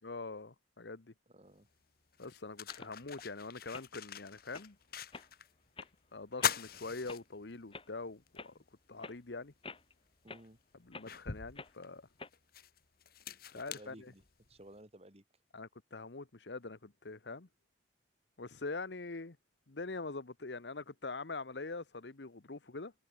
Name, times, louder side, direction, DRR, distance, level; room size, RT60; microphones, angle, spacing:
voice 1, 0.0-1.1 2.2-4.8 6.1-8.5 8.9-9.5 10.8-12.1 13.5-14.1 15.5-17.5 18.4-19.4 19.7-22.9, left 3 dB, 75° left, 1.2 m, -44 dB
voice 2, 1.3-1.7 8.6-8.7 10.2-10.6 13.5-14.2 14.5-15.2, right 1 dB, 35° right, 6.2 m, -56 dB
sound 1, 1.5-1.6 2.1-5.5 5.8-5.9 6.3-7.8 8.3-8.4 9.8-9.9 10.4-14.6, left 7 dB, 55° left, 1.6 m, -41 dB
sound 2, 2.7-3.2 3.7-3.9 4.4-4.7 5.1-5.3 5.8-5.9 6.4-6.6 7.1-7.2 7.7-7.9 8.4-8.5 9.0-9.2 9.6-9.9 10.3-10.4 10.9-11.1 11.6-11.7 12.2-12.3, left 3 dB, 30° left, 4.0 m, -48 dB
head